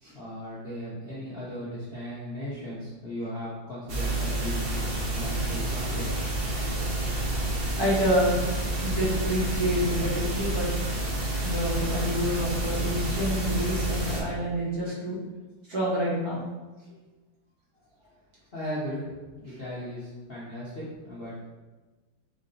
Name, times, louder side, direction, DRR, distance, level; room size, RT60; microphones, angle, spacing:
voice 1, 0.1-6.1 6.6-6.8 18.5-21.5, equal, 45° left, -9 dB, 0.8 m, -37 dB
sound 1, 3.9-14.2, right 1 dB, 65° right, 0.5 m, -29 dB
voice 2, 7.8-8.4 8.8-10.7 11.4-15.2 15.7-16.4 16.9-17.0, equal, 50° right, -8 dB, 1.8 m, -28 dB
4.7 x 2.7 x 3.8 m, 1.2 s
omnidirectional pair, 2.1 m